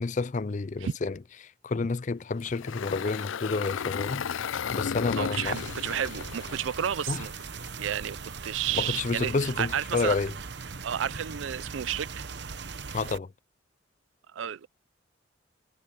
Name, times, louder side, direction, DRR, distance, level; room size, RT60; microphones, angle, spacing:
voice 1, 0.0-4.2 4.7-5.6 7.1-7.2 8.8-10.3 12.9-13.3, left 4 dB, 40° left, 0.4 m, -30 dB
Engine, 2.4-7.7, left 7 dB, 90° left, 0.5 m, -34 dB
voice 2, 5.2-7.3 7.8-8.2 8.4-10.2 10.8-12.2 14.3-14.7, right 9 dB, 85° right, 0.4 m, -31 dB
sound 1, 5.4-13.2, right 5 dB, 60° right, 1.0 m, -40 dB
head